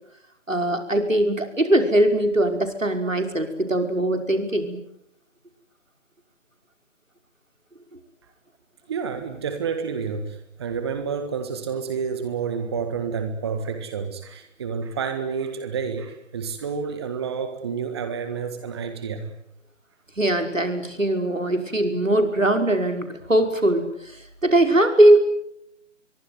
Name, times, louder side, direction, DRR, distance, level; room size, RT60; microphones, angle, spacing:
voice 1, 0.5-4.8 20.2-25.3, right 1 dB, 85° right, 6 dB, 5.7 m, -21 dB
voice 2, 8.9-19.3, right 6 dB, 20° right, 8 dB, 1.7 m, -29 dB
24.5 x 23.5 x 9.6 m, 0.78 s
figure-of-eight pair, 155°, 38 cm